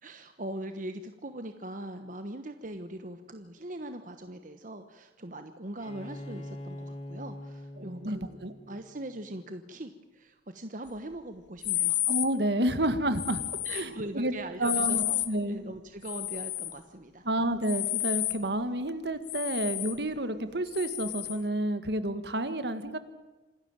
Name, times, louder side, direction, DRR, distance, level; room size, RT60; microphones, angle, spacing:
voice 1, 0.0-8.4 8.7-12.0 13.6-15.2 15.5-17.2, right 1 dB, 45° right, 8 dB, 1.2 m, -41 dB
Bowed string instrument, 5.8-9.4, left 1 dB, 35° left, 2.7 m, -44 dB
voice 2, 7.8-8.5 12.1-13.4 13.7-14.3 14.6-15.6 17.3-23.0, right 1 dB, 65° right, 10 dB, 1.8 m, -30 dB
sound 1, 11.6-12.3 13.1-13.9 14.6-15.3 16.0-16.8 17.6-18.4 19.2-20.0 20.7-21.4, left 15 dB, 90° left, 1.2 m, -31 dB
27.0 x 12.0 x 9.0 m, 1.2 s
head